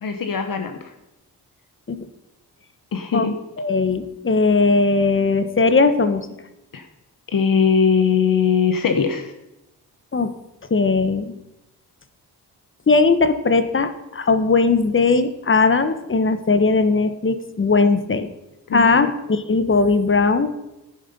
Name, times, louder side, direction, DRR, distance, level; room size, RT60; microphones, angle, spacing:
voice 1, 0.0-0.9 2.9-3.4 6.7-6.8 7.3-9.3 18.7-19.1, left 6 dB, 55° left, 6 dB, 1.1 m, -20 dB
voice 2, 3.6-6.3 10.1-10.3 10.7-11.3 12.9-18.3 18.7-20.6, left 3 dB, 30° left, 11 dB, 1.1 m, -18 dB
11.0 x 9.4 x 5.4 m, 0.94 s
cardioid pair, 85°, 40 cm